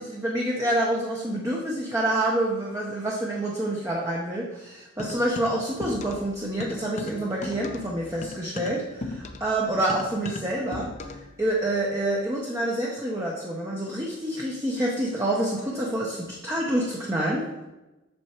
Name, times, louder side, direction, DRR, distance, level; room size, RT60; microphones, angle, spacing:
voice 1, 0.0-10.9 11.4-17.6, right 1 dB, 15° right, -3 dB, 0.8 m, -27 dB
sound 1, 5.0-6.3 6.6-11.3, left 2 dB, 35° left, 0.6 m, -37 dB
7.8 x 6.7 x 2.9 m, 1.1 s
head